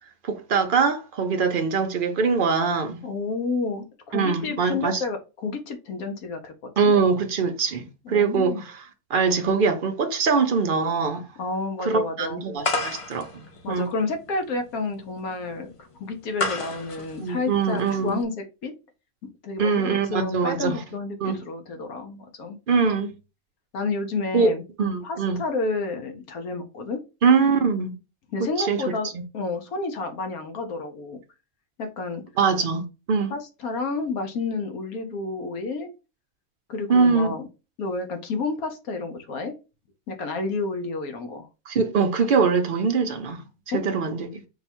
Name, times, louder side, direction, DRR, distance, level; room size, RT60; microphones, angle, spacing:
voice 1, 0.2-3.0 4.1-5.0 6.8-8.8 9.1-11.3 11.8-13.9 17.2-18.2 19.6-20.8 21.2-21.4 22.7-23.1 24.3-24.5 24.8-25.4 27.2-27.9 28.6-29.2 32.4-33.3 36.9-37.3 41.7-43.4 43.7-44.4, right 5 dB, 55° right, 0.6 m, -23 dB
voice 2, 3.0-6.5 6.8-7.0 8.0-8.6 11.4-12.4 13.6-15.7 16.0-18.7 19.4-22.6 23.7-24.6 25.0-27.0 28.3-29.1 29.3-31.2 31.8-32.2 33.3-35.9 36.7-37.4 37.8-39.5 40.1-41.5 43.7-43.8, left 3 dB, 85° left, 1.3 m, -30 dB
sound 1, 12.6-18.2, left 3 dB, 55° left, 0.3 m, -32 dB
4.6 x 2.3 x 4.3 m
omnidirectional pair, 1.5 m